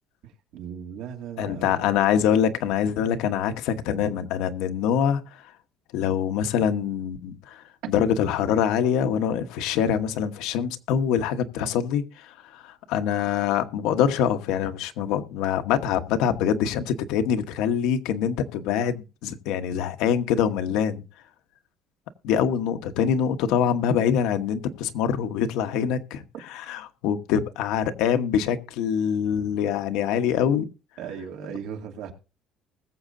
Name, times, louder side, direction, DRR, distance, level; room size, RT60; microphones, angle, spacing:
voice 1, 0.2-1.9 8.0-8.1 31.0-32.1, right 8 dB, 70° right, 2.4 m, -37 dB
voice 2, 1.4-5.2 5.9-21.0 22.2-26.2 26.5-30.6, left 8 dB, 85° left, 1.1 m, -24 dB
20.5 x 7.5 x 2.6 m
cardioid pair, 180°, 0 cm